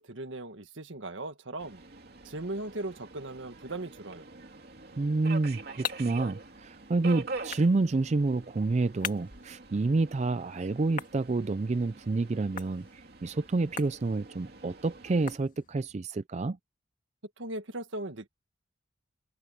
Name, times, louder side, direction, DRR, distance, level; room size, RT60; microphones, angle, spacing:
voice 1, 0.0-1.8 2.2-4.3 17.4-18.3, right 2 dB, 75° right, 1.7 m, -38 dB
Subway metro underground, 1.6-15.4, right 3 dB, 50° right, 2.9 m, -45 dB
voice 2, 5.0-16.6, right 3 dB, 35° right, 0.4 m, -29 dB
sound 1, 5.1-16.0, left 7 dB, 40° left, 2.0 m, -45 dB
head